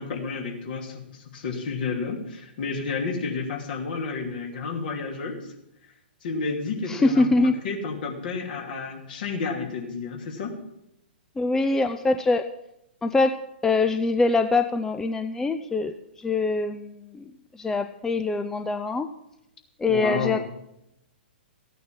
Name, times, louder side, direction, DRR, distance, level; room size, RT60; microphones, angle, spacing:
voice 1, 0.0-5.5 6.2-10.5 19.9-20.4, left 4 dB, 55° left, 2 dB, 2.8 m, -31 dB
voice 2, 6.9-7.6 11.4-12.4 13.0-13.4 13.6-15.9 16.2-17.2 17.6-19.1 19.8-20.4, left 3 dB, 10° left, 8 dB, 0.5 m, -23 dB
14.5 x 9.2 x 6.0 m, 0.83 s
figure-of-eight pair, 115°, 6 cm